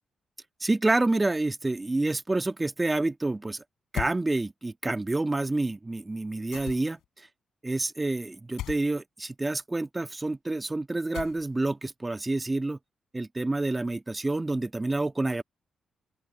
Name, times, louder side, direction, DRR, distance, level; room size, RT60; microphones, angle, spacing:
voice 1, 0.6-3.6 3.9-7.3 7.6-12.8 13.1-15.4, right 2 dB, 20° right, 1.5 m, -28 dB
sound 1, 3.9-4.2 6.5-7.0 8.6-8.8 11.1-11.7, left 13 dB, 90° left, 6.3 m, -36 dB
open air
supercardioid pair, 60°, 0 cm